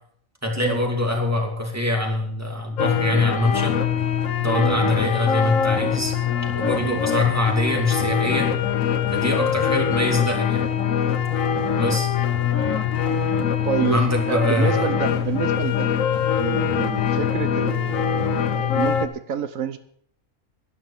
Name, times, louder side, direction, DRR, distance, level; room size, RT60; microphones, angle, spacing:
voice 1, 0.4-3.8 4.4-6.1 6.5-8.5 9.1-10.7 11.8-12.1 13.9-14.9, left 1 dB, 10° right, 1 dB, 2.7 m, -23 dB
sound 1, 2.8-19.1, left 8 dB, 75° left, 1.4 m, -23 dB
voice 2, 13.6-16.0 16.4-19.8, right 9 dB, 80° right, 12 dB, 1.2 m, -29 dB
11.5 x 11.0 x 7.2 m, 0.66 s
omnidirectional pair, 1.4 m